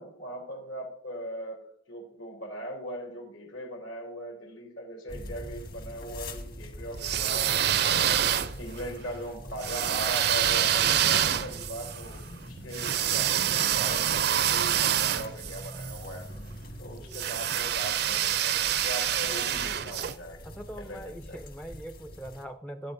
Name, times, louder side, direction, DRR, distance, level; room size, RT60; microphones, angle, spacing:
voice 1, 0.0-1.6 1.9-16.3 16.8-21.4, equal, 80° left, 1 dB, 3.4 m, -40 dB
sound 1, 5.1-22.4, equal, 50° left, 1.5 m, -44 dB
sound 2, 6.9-8.8 9.6-16.0 17.1-20.1, right 10 dB, 55° right, 0.4 m, -26 dB
voice 2, 20.4-22.9, right 1 dB, 5° left, 7 dB, 0.4 m, -42 dB
13.0 x 11.5 x 2.6 m, 0.70 s
head